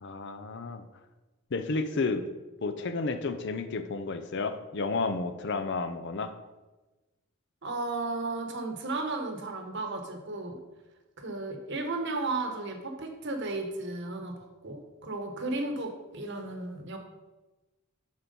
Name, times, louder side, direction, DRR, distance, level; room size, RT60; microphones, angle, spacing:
voice 1, 0.0-0.8 1.5-2.3 2.6-6.4, left 3 dB, 55° left, 10 dB, 0.5 m, -31 dB
voice 2, 7.6-10.6 11.2-17.0, right 2 dB, 55° right, 5 dB, 1.1 m, -34 dB
7.6 x 4.5 x 5.4 m, 1.1 s
head